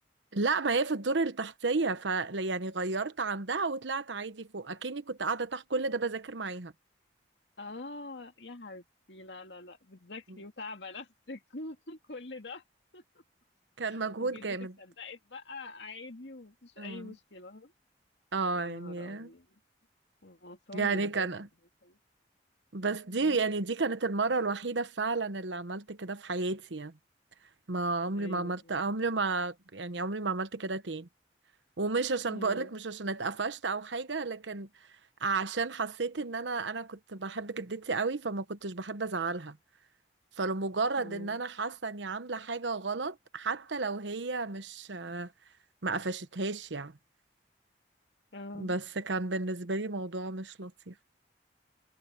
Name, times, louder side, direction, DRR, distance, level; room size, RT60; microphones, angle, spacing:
voice 1, 0.3-6.7 13.8-14.7 16.8-17.1 18.3-19.3 20.7-21.5 22.7-26.9 27.7-31.1 31.8-34.7 35.2-39.6 40.4-45.3 45.8-47.0 48.5-50.9, right 3 dB, 90° right, 1.1 m, -32 dB
voice 2, 7.6-12.6 12.9-13.0 13.9-17.7 18.6-19.6 20.2-21.4 21.8-22.0 23.1-23.4 28.1-28.7 32.3-32.7 41.0-41.4 48.3-48.7, left 2 dB, 75° left, 2.2 m, -45 dB
head